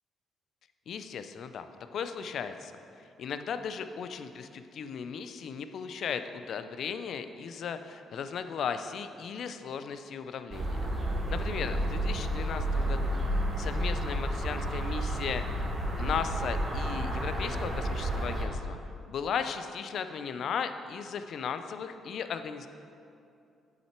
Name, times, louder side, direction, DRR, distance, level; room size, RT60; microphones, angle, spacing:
voice 1, 0.9-1.7 1.9-2.7 3.2-10.9 11.3-13.3 13.6-15.4 16.0-18.8 19.1-22.7, left 7 dB, 65° left, 9 dB, 0.4 m, -36 dB
sound 1, 10.5-18.4, right 1 dB, 30° right, 1.2 m, -31 dB
7.8 x 5.7 x 4.4 m, 2.6 s
cardioid pair, 90°, 0 cm